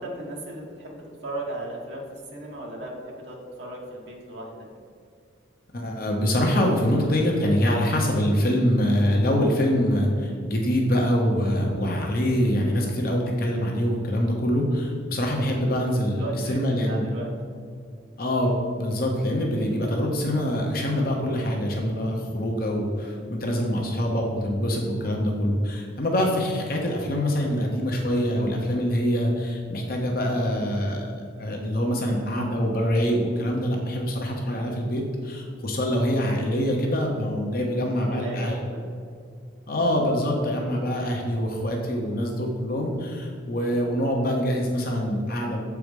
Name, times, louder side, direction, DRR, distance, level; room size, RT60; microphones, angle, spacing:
voice 1, 0.0-2.0 2.3-4.7 16.1-17.3 37.7-38.8, right 1 dB, 60° right, -2 dB, 1.5 m, -36 dB
voice 2, 5.7-17.1 18.2-31.1 31.4-38.5 39.7-45.6, equal, 45° left, 0 dB, 0.9 m, -24 dB
7.6 x 4.7 x 5.2 m, 2.3 s
head